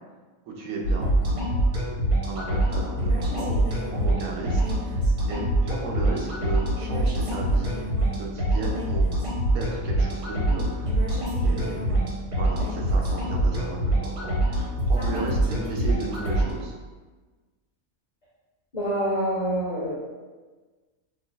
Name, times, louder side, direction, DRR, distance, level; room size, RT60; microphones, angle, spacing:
voice 1, 0.5-1.1 2.2-7.7 8.2-9.1 9.5-11.0 11.4-11.9 12.4-16.8, right 3 dB, 85° right, -1 dB, 1.1 m, -35 dB
sound 1, 0.8-16.5, right 1 dB, 65° right, 1.2 m, -25 dB
voice 2, 18.7-19.9, equal, 45° left, -7 dB, 0.6 m, -26 dB
5.2 x 2.3 x 2.2 m, 1.3 s
omnidirectional pair, 1.4 m